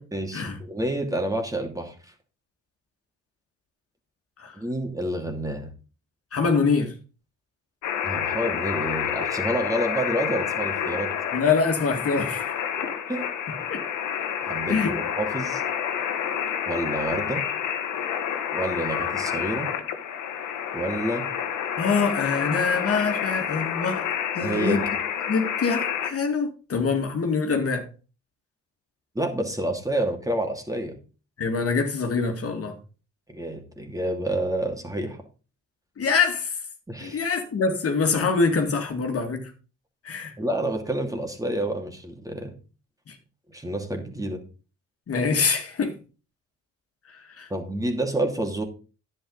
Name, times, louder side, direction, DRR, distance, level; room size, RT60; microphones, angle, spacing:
voice 1, 0.1-2.1 4.5-5.7 8.0-11.1 12.8-13.3 14.4-15.6 16.7-17.4 18.5-19.7 20.7-21.2 24.4-24.9 29.1-30.9 33.3-35.2 36.9-37.2 40.4-42.5 43.5-44.4 47.5-48.6, right 1 dB, 10° right, 2.7 m, -29 dB
voice 2, 6.3-6.9 11.3-12.5 13.7-13.8 14.7-15.0 21.8-24.1 24.3-24.9 25.3-27.9 31.4-32.8 36.0-36.6 37.0-39.5 40.0-40.3 43.1-43.2 45.1-46.0 47.1-47.5, left 5 dB, 50° left, 2.2 m, -24 dB
sound 1, 7.8-26.1, left 9 dB, 75° left, 1.6 m, -29 dB
10.0 x 8.8 x 4.0 m
cardioid pair, 90°, 30 cm